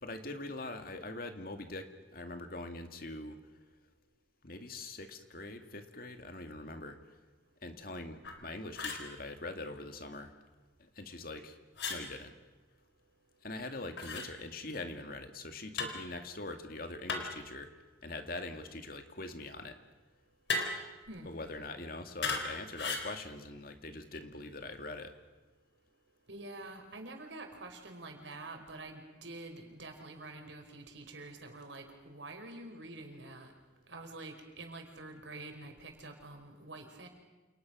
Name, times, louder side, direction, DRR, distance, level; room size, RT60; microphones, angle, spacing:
voice 1, 0.0-3.4 4.4-7.0 7.6-10.3 10.8-11.6 11.9-12.3 13.4-17.7 18.0-19.8 21.3-25.1, left 2 dB, 50° left, 6 dB, 2.4 m, -43 dB
sound 1, 8.2-8.4 8.7-9.1 11.8-12.0 14.0-14.3 15.8-16.0 17.1-17.5 20.5-20.9 22.2-22.5 22.7-23.1, left 3 dB, 75° left, 4.1 m, -35 dB
voice 2, 26.3-33.5 33.9-37.1, right 2 dB, 85° right, 4 dB, 5.1 m, -47 dB
29.0 x 28.5 x 6.3 m, 1.2 s
head